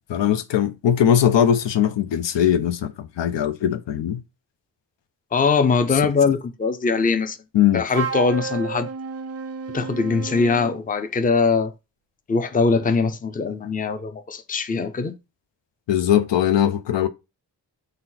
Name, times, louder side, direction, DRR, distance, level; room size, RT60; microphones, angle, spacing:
voice 1, 0.1-4.2 7.5-7.8 15.9-17.1, left 9 dB, 85° left, 0.5 m, -20 dB
voice 2, 5.3-7.4 7.7-8.9 9.7-11.7 12.3-15.1, left 4 dB, 20° left, 0.4 m, -21 dB
Wind instrument woodwind instrument, 7.9-10.8, right 6 dB, 40° right, 0.4 m, -31 dB
4.1 x 2.1 x 3.9 m
cardioid pair, 65°, 43 cm